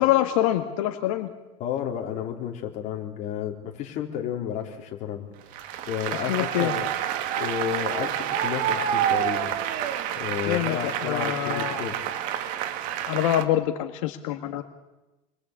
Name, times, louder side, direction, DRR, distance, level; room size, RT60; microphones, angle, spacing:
voice 1, 0.0-1.3 6.1-6.8 10.4-11.8 13.0-14.6, left 13 dB, 90° left, 6 dB, 1.9 m, -25 dB
voice 2, 1.6-5.3 5.9-6.9 7.3-9.5 10.2-12.0, left 9 dB, 45° left, 1 dB, 4.7 m, -32 dB
Applause, 5.5-13.4, right 10 dB, 55° right, 2.3 m, -28 dB
28.5 x 22.5 x 8.6 m, 1.0 s
cardioid pair, 150°, 17 cm